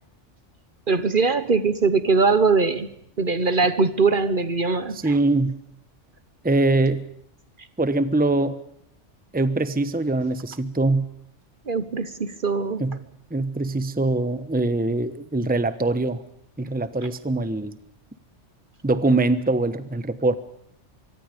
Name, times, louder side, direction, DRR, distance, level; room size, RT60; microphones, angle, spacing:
voice 1, 0.9-2.9 3.2-5.2 11.7-13.0, right 4 dB, 45° right, 13 dB, 1.3 m, -21 dB
voice 2, 5.0-5.5 6.4-7.0 7.8-8.6 9.3-11.0 12.8-13.0 13.3-16.2 16.6-17.8 18.8-20.3, right 2 dB, 10° right, 12 dB, 1.0 m, -23 dB
25.0 x 23.5 x 5.3 m, 0.72 s
omnidirectional pair, 1.2 m